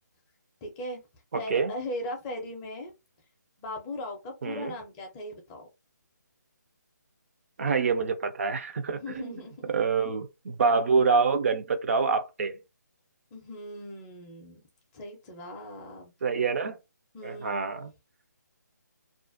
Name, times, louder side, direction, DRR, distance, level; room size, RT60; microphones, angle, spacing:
voice 1, 0.6-1.0 1.3-2.9 3.6-5.7 9.0-9.6 13.3-14.6 14.9-16.1 17.1-17.7, left 1 dB, 15° left, 0.4 m, -38 dB
voice 2, 1.3-1.7 4.4-4.7 7.6-9.4 9.7-12.6 16.2-16.8 17.2-17.9, right 5 dB, 45° right, 0.4 m, -26 dB
2.4 x 2.0 x 2.5 m
figure-of-eight pair, 155°, 10 cm